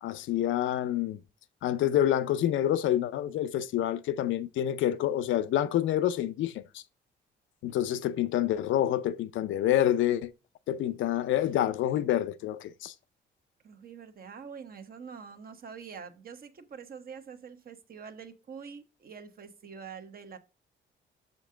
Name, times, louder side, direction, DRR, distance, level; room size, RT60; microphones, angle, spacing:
voice 1, 0.0-1.2 1.6-6.8 7.6-10.3 10.7-12.9, left 11 dB, 75° left, 0.5 m, -27 dB
voice 2, 13.6-20.4, right 6 dB, 50° right, 1.0 m, -45 dB
6.7 x 5.1 x 3.7 m
cardioid pair, 90°, 20 cm